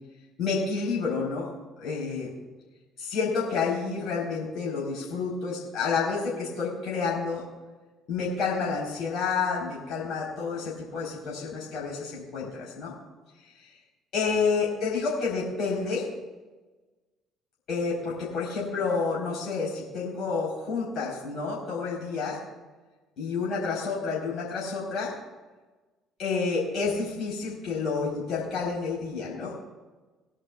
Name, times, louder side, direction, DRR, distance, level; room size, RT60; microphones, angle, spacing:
voice 1, 0.4-1.5 1.8-2.3 3.0-7.4 8.1-12.9 13.6-13.7 14.1-16.1 17.7-22.4 23.2-25.1 26.2-29.6, left 4 dB, 55° left, -4 dB, 4.1 m, -29 dB
20.5 x 11.0 x 2.4 m, 1.2 s
figure-of-eight pair, 55°, 0 cm